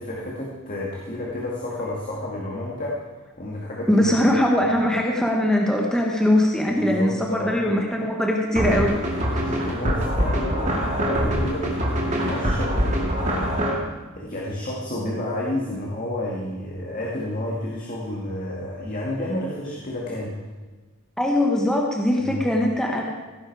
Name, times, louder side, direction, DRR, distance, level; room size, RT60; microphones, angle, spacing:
voice 1, 0.0-3.0 3.4-4.1 6.8-7.6 9.4-11.8 12.0-13.8 14.2-20.4 22.2-22.4, left 1 dB, 40° left, -3 dB, 2.2 m, -30 dB
voice 2, 3.9-9.0 9.3-9.4 21.2-23.1, left 1 dB, 5° left, -1 dB, 1.2 m, -21 dB
sound 1, 8.6-13.8, equal, 35° right, 2.5 m, -24 dB
16.5 x 10.0 x 4.8 m, 1.3 s
head